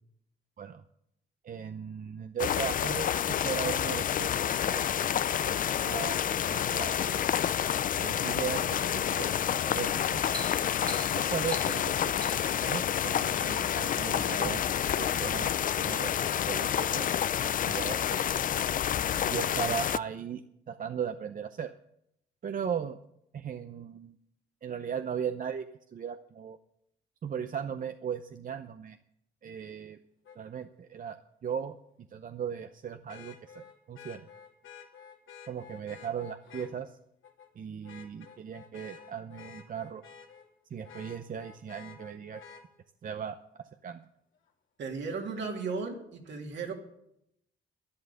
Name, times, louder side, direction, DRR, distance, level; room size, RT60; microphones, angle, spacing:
voice 1, 1.4-4.9 5.4-6.2 6.5-7.4 8.0-10.3 11.1-14.6 14.9-15.5 15.8-17.1 17.4-18.5 19.3-20.4 20.7-21.7 22.4-23.0 23.3-24.2 24.6-25.6 25.9-26.6 27.2-29.0 29.4-30.0 30.4-31.2 31.4-31.8 32.1-34.3 35.5-37.0 37.6-40.0 40.7-42.4 43.0-44.0, right 8 dB, 45° right, 9 dB, 0.7 m, -37 dB
sound 1, 2.4-20.0, left 9 dB, 45° left, 0.4 m, -29 dB
sound 2, 9.4-9.6 10.0-12.6 13.4-14.0 14.4-14.5, right 2 dB, 20° right, 1.6 m, -43 dB
Vehicle horn car horn honking, 30.2-30.4 33.1-36.7 37.2-37.5 37.8-40.5 40.8-42.6 44.5-44.6, left 7 dB, 75° left, 2.4 m, -50 dB
voice 2, 44.8-46.7, right 4 dB, 65° right, 2 dB, 2.7 m, -35 dB
11.5 x 11.0 x 6.8 m, 0.77 s
cardioid pair, 90°, 20 cm